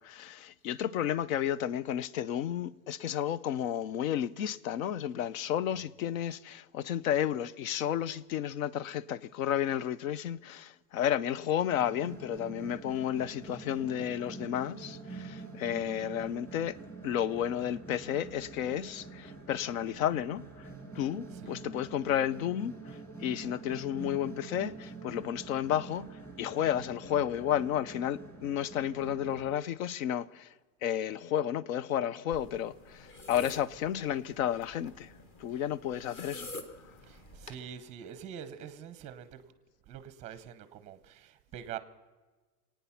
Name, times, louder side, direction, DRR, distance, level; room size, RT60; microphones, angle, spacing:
voice 1, 0.0-16.8 17.0-20.7 21.0-30.5 30.8-35.1 35.4-36.5, left 10 dB, 60° left, 0.7 m, -32 dB
Night Synth Sequence, 11.7-29.5, right 3 dB, 5° left, 1.7 m, -46 dB
voice 2, 21.3-21.6 35.5-35.6 37.0-39.5 39.9-41.8, right 9 dB, 15° right, 0.7 m, -45 dB
Sipping Drink, 32.3-37.6, left 1 dB, 25° left, 1.3 m, -47 dB
25.5 x 9.3 x 5.8 m
supercardioid pair, 160°, 47 cm